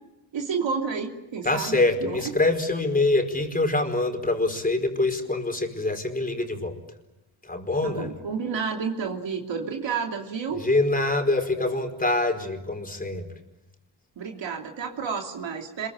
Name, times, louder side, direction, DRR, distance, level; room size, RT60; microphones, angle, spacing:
voice 1, 0.3-2.2 7.8-10.6 14.2-15.9, right 5 dB, 65° right, 2 dB, 3.1 m, -30 dB
voice 2, 1.4-6.8 7.4-8.2 10.5-13.3, left 2 dB, 15° left, 5 dB, 4.8 m, -25 dB
26.5 x 22.5 x 9.0 m, 0.96 s
cardioid pair, 85°, 48 cm